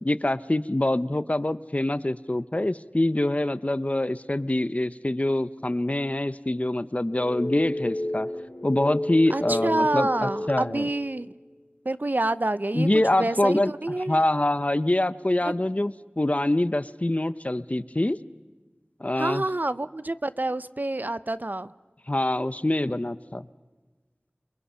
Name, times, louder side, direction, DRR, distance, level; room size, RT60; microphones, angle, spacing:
voice 1, 0.0-8.3 8.6-10.9 12.7-13.7 14.1-18.2 19.0-19.4 22.1-23.5, left 1 dB, 35° left, 15 dB, 0.7 m, -25 dB
sound 1, 7.1-11.3, left 1 dB, 55° left, 2.7 m, -32 dB
voice 2, 9.3-11.3 11.8-12.9 13.1-14.2 15.4-15.5 19.2-21.7, right 2 dB, 50° right, 15 dB, 0.7 m, -27 dB
29.5 x 23.0 x 5.7 m, 1.3 s
wide cardioid pair, 45°, 4 cm